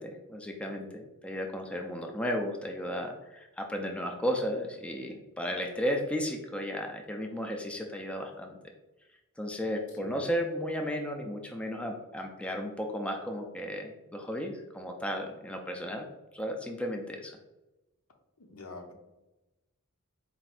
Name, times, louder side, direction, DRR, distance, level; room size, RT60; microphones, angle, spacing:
voice 1, 0.0-8.6 9.4-16.1 16.3-17.4, equal, 5° left, 2 dB, 0.4 m, -34 dB
voice 2, 9.9-10.3 18.4-18.9, left 2 dB, 75° left, 4 dB, 0.7 m, -45 dB
4.2 x 2.4 x 4.2 m, 1.0 s
head